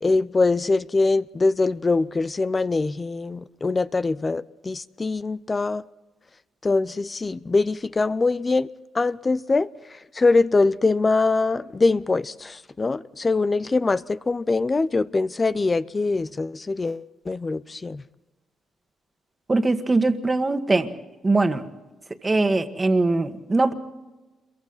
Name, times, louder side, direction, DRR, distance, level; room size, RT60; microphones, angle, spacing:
voice 1, 0.0-5.8 6.6-8.7 8.9-9.7 10.1-18.0, left 3 dB, 25° left, 0.6 m, -23 dB
voice 2, 19.5-20.9 21.2-21.6 22.2-23.7, right 2 dB, 20° right, 1.7 m, -21 dB
27.5 x 23.0 x 4.1 m
cardioid pair, 90°, 0 cm